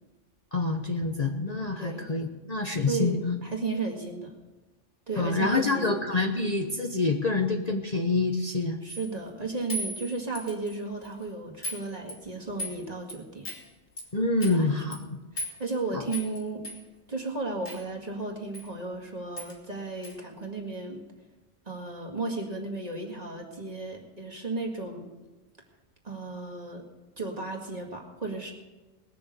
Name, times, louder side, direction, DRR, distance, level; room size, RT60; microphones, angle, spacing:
voice 1, 0.5-3.4 5.2-8.8 14.1-15.0 15.9-16.0, left 3 dB, 35° left, 2 dB, 1.0 m, -27 dB
voice 2, 2.9-4.3 5.1-6.0 8.8-13.5 14.5-15.0 15.3-16.7 17.1-21.0 21.7-25.1 26.0-26.9 27.2-28.5, right 3 dB, 35° right, 0 dB, 2.1 m, -34 dB
sound 1, 8.9-9.1 9.7-10.8 11.0-11.2 11.6-11.8 12.1-12.8 13.1-13.2 13.5-13.6 14.0-14.1 14.4-14.6 14.9-15.0 15.4-15.8 16.1-16.4 16.6-16.8 17.7-17.8 18.5-18.7 18.9-19.0 19.4-19.6 20.0-20.2, equal, 60° left, 3.0 m, -36 dB
20.5 x 6.9 x 6.9 m, 1.1 s
omnidirectional pair, 1.2 m